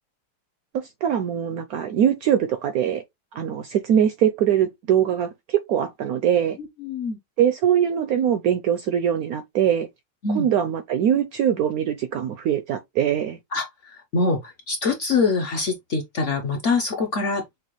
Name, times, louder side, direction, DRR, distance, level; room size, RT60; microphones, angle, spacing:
voice 1, 0.7-3.0 3.3-6.6 7.4-9.9 10.3-13.4, right 9 dB, 75° right, 0.8 m, -22 dB
voice 2, 6.6-7.2 10.2-10.5 13.5-17.4, left 4 dB, 60° left, 0.8 m, -24 dB
6.4 x 2.3 x 3.0 m
omnidirectional pair, 2.0 m